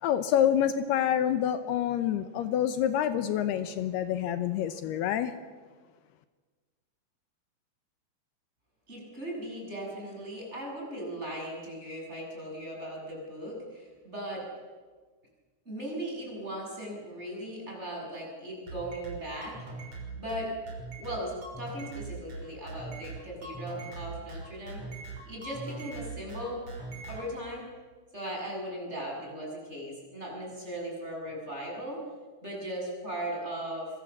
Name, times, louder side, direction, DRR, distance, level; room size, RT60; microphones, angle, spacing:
voice 1, 0.0-5.3, left 10 dB, 80° left, 10 dB, 2.9 m, -27 dB
voice 2, 8.9-14.5 15.7-19.6 20.2-20.5 21.0-24.8 25.2-26.6 27.0-27.7 28.1-32.0 32.4-33.9, right 1 dB, 15° right, -1 dB, 7.5 m, -38 dB
sound 1, 18.7-27.2, right 3 dB, 40° right, 6.8 m, -41 dB
27.5 x 23.0 x 7.4 m, 1.4 s
omnidirectional pair, 4.7 m